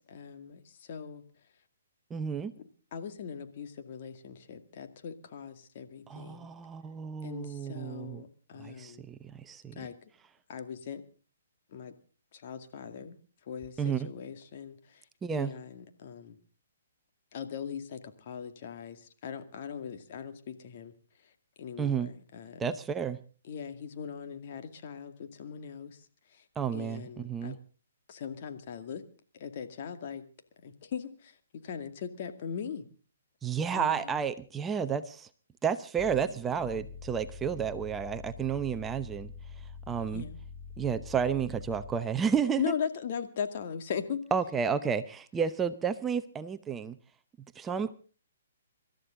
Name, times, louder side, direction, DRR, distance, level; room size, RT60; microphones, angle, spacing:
voice 1, 0.1-1.2 2.6-6.5 7.2-9.0 9.8-10.1 10.5-11.0 11.7-11.9 12.3-15.1 15.3-16.4 17.3-20.9 21.2-21.3 21.6-22.7 23.4-26.5 26.7-27.6 28.1-29.0 29.3-30.2 30.6-32.9 33.7-34.2 40.1-40.4 42.6-44.2, left 7 dB, 50° left, 7 dB, 2.2 m, -40 dB
voice 2, 2.1-2.5 6.1-8.2 8.6-9.8 13.8-14.1 15.2-15.5 21.8-22.1 22.6-23.2 26.6-27.5 33.4-35.3 35.6-39.3 39.9-40.2 40.8-42.6 44.3-47.0 47.6-47.9, right 7 dB, 15° right, 10 dB, 0.8 m, -31 dB
sound 1, 36.0-42.2, left 5 dB, 15° left, 1.8 m, -46 dB
26.0 x 13.0 x 3.8 m, 0.36 s
hypercardioid pair, 135°, 0 cm